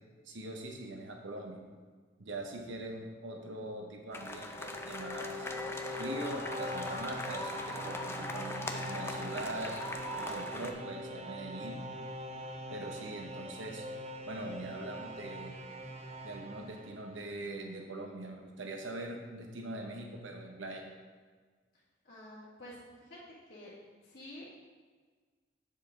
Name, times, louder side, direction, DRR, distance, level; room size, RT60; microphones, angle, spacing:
voice 1, 0.2-1.6 2.2-5.5 6.0-9.8 10.2-11.8 12.7-13.8 14.3-15.6 16.2-20.8, right 1 dB, 85° right, 2 dB, 1.0 m, -42 dB
sound 1, 4.1-10.7, left 2 dB, 15° left, 0.5 m, -41 dB
sound 2, 4.4-17.5, equal, 35° right, 0.7 m, -43 dB
voice 2, 22.0-23.2 23.5-23.7 24.0-24.5, left 1 dB, 50° left, -12 dB, 2.0 m, -49 dB
7.7 x 7.2 x 3.8 m, 1.5 s
head